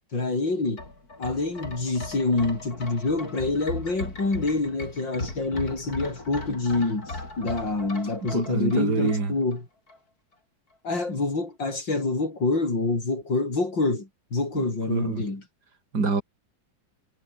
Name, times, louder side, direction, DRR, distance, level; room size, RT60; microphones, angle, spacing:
voice 1, 0.1-0.8 1.2-9.7 10.8-15.4, left 3 dB, 70° left, 6.7 m, -26 dB
sound 1, 0.7-9.6 9.9-10.0, left 2 dB, 50° left, 6.2 m, -38 dB
voice 2, 8.3-9.3 14.6-15.2 15.9-16.2, right 4 dB, 55° right, 4.2 m, -26 dB
omnidirectional pair, 2.0 m